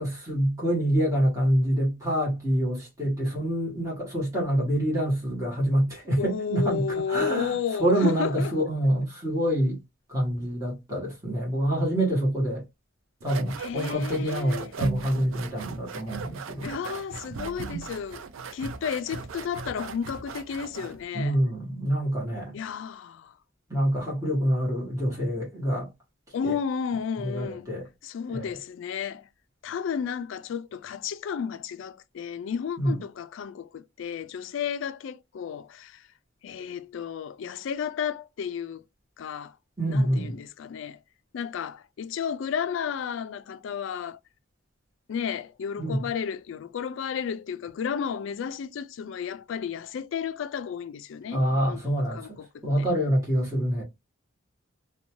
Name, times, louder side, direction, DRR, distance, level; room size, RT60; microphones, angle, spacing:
voice 1, 0.0-7.5 7.8-9.8 10.1-12.6 13.2-16.7 21.1-22.6 23.7-25.9 27.2-27.8 28.3-28.5 32.8-32.9 39.8-40.3 45.8-46.0 51.3-52.4 52.6-53.8, equal, 15° right, 1.1 m, -26 dB
voice 2, 6.2-8.6 13.6-14.8 16.6-18.2 18.5-21.4 22.5-23.3 26.3-27.7 28.0-29.3 29.6-36.0 36.4-38.8 39.2-39.5 39.9-41.0 41.3-44.2 45.1-52.9, left 7 dB, 65° left, 0.3 m, -32 dB
sound 1, 13.2-21.0, right 5 dB, 75° right, 0.4 m, -38 dB
2.6 x 2.2 x 2.8 m
head